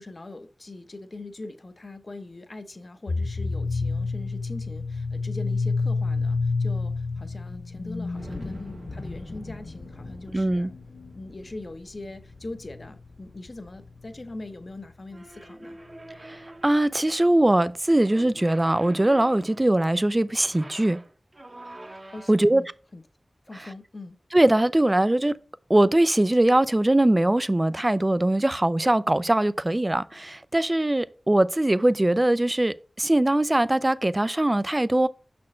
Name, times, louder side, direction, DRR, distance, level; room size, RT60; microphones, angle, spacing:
voice 1, 0.0-10.7 11.1-15.8 22.1-23.0 23.5-24.2, left 2 dB, 50° left, 0.8 m, -41 dB
sound 1, 3.1-14.3, left 3 dB, 80° left, 0.4 m, -30 dB
sound 2, 4.5-4.6 5.4-5.5 6.0-6.1 7.8-14.2 14.6-15.5, right 1 dB, 90° right, 1.5 m, -48 dB
voice 2, 10.3-10.7 16.2-21.0 22.3-22.6 24.3-25.4 25.7-35.1, right 1 dB, 25° right, 0.4 m, -21 dB
sound 3, 15.1-17.0 17.9-19.7 20.3-22.6, right 1 dB, 40° right, 0.9 m, -45 dB
6.2 x 4.3 x 4.3 m
wide cardioid pair, 55°, 0 cm